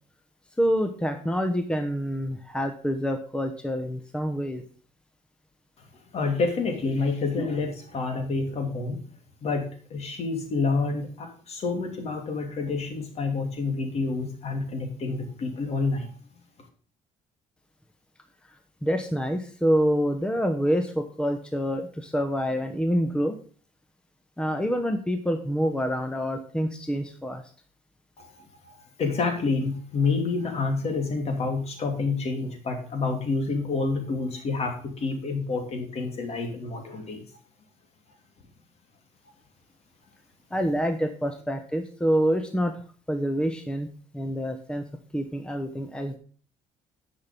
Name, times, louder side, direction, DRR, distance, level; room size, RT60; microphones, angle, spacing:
voice 1, 0.6-4.6 18.8-23.4 24.4-27.4 40.5-42.7 43.1-43.9 44.1-44.8 45.1-46.2, equal, 5° left, 6 dB, 1.0 m, -26 dB
voice 2, 6.1-9.0 9.4-16.1 28.2-37.2, left 4 dB, 50° left, 4 dB, 2.9 m, -28 dB
10.5 x 6.1 x 5.3 m, 0.42 s
cardioid pair, 110°, 13 cm